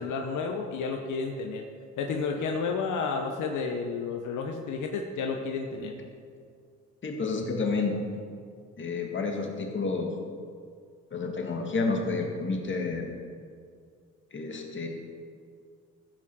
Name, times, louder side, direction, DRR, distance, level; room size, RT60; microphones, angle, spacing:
voice 1, 0.0-1.6 2.0-5.9, left 4 dB, 80° left, 3 dB, 1.0 m, -31 dB
voice 2, 7.0-8.0 8.8-10.1 11.1-13.1 14.3-14.9, left 3 dB, 40° left, 1 dB, 2.1 m, -30 dB
14.5 x 6.1 x 6.3 m, 2.2 s
cardioid pair, 90°, 30 cm